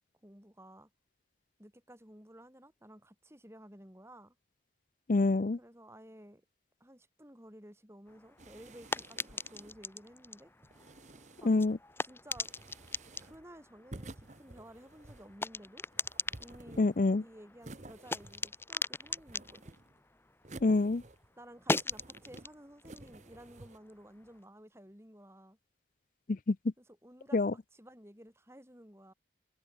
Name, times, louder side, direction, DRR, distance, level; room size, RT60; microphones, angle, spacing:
voice 1, 0.2-0.9 1.6-4.3 5.6-6.4 6.8-10.5 11.4-11.5 12.0-12.5 13.2-15.9 16.4-16.9 17.2-19.7 21.4-25.6 26.8-29.1, equal, 15° right, 7.9 m, -54 dB
voice 2, 5.1-5.6 11.4-11.8 16.8-17.2 20.6-21.0 26.3-26.6 27.3-27.5, left 3 dB, 45° left, 0.5 m, -26 dB
sound 1, 8.1-20.8 21.1-24.4, left 3 dB, 15° left, 1.5 m, -41 dB
sound 2, 8.4-9.9 10.6-11.8 12.3-13.5 13.9-15.4 15.9-17.1 17.6-18.7 19.0-20.0 20.4-21.4 21.7-22.5 22.8-23.8, right 2 dB, 40° right, 1.3 m, -52 dB
head